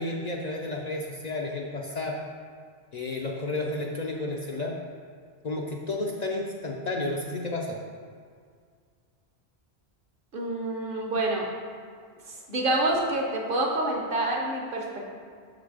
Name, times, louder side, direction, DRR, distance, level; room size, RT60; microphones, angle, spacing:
voice 1, 0.0-2.2 2.9-4.8 5.4-7.8, left 2 dB, 50° left, -1 dB, 0.5 m, -31 dB
voice 2, 10.3-11.5 12.2-14.8, right 2 dB, 55° right, 0 dB, 1.0 m, -27 dB
6.3 x 4.0 x 4.8 m, 2.1 s
omnidirectional pair, 1.1 m